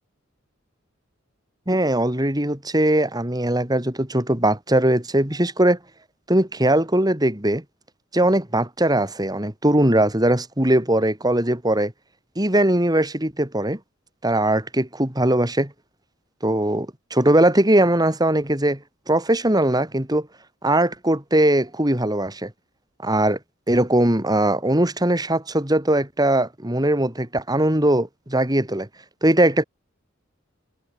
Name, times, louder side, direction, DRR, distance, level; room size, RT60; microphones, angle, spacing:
voice 1, 1.7-5.8 6.3-7.6 8.1-11.9 12.4-13.8 14.2-15.7 16.4-18.8 19.1-20.3 20.6-22.5 23.0-23.4 23.7-28.9 29.2-29.6, right 1 dB, 20° right, 3.6 m, -20 dB
head